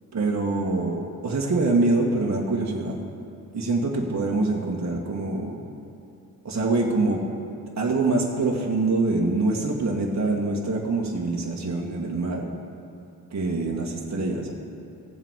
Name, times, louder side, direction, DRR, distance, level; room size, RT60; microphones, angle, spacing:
voice 1, 0.1-3.0 3.5-5.6 6.4-7.2 7.8-12.5 13.3-14.5, right 3 dB, 35° right, -1 dB, 1.8 m, -25 dB
16.5 x 7.5 x 4.9 m, 2.8 s
hypercardioid pair, 40°, 47 cm